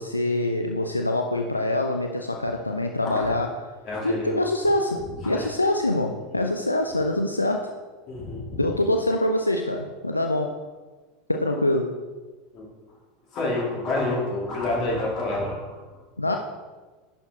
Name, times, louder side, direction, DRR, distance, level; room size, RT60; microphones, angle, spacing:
voice 1, 0.0-3.6 4.0-7.8 8.6-10.6 11.3-12.0 16.2-16.4, left 1 dB, 85° left, 4 dB, 0.3 m, -25 dB
voice 2, 3.9-4.4 5.2-5.5 8.1-8.7 12.5-12.7 13.3-15.8, left 2 dB, 40° left, -3 dB, 2.2 m, -28 dB
10.5 x 4.2 x 2.8 m, 1.3 s
figure-of-eight pair, 80°, 0 cm